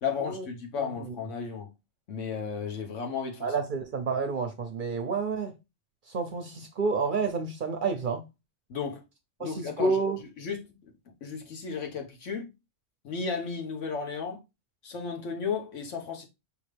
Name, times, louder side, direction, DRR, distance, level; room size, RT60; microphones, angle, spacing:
voice 1, 0.0-1.7 2.1-3.5 8.7-9.0 9.4-10.0 10.4-10.9 11.2-12.5 13.0-14.4 14.8-16.3, left 5 dB, 80° left, 1.4 m, -34 dB
voice 2, 0.8-1.1 3.4-5.5 6.1-8.2 9.4-10.2, right 4 dB, 55° right, 0.6 m, -29 dB
4.8 x 3.0 x 3.2 m
omnidirectional pair, 1.3 m